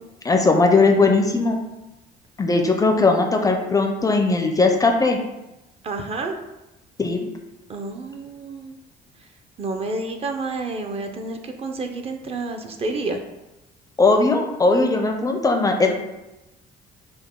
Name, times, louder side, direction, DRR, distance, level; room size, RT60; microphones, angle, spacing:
voice 1, 0.2-1.6 2.4-5.2 7.0-7.3 14.0-15.9, left 3 dB, 20° left, 4 dB, 0.4 m, -18 dB
voice 2, 5.8-6.4 7.7-8.7 9.6-13.2, right 3 dB, 35° right, 5 dB, 0.5 m, -29 dB
5.0 x 2.2 x 3.6 m, 0.98 s
cardioid pair, 110°, 17 cm